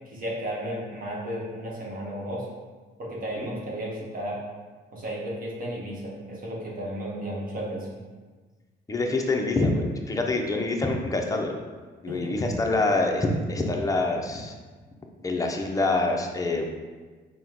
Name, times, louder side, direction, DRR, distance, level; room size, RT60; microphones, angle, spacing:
voice 1, 0.1-2.5 3.0-4.4 4.9-7.9 12.1-12.3, right 1 dB, 45° right, -4 dB, 1.0 m, -33 dB
voice 2, 8.9-11.6 12.0-14.5 15.2-16.6, left 2 dB, 15° left, 2 dB, 0.5 m, -26 dB
4.3 x 2.1 x 3.7 m, 1.4 s
cardioid pair, 90°, 20 cm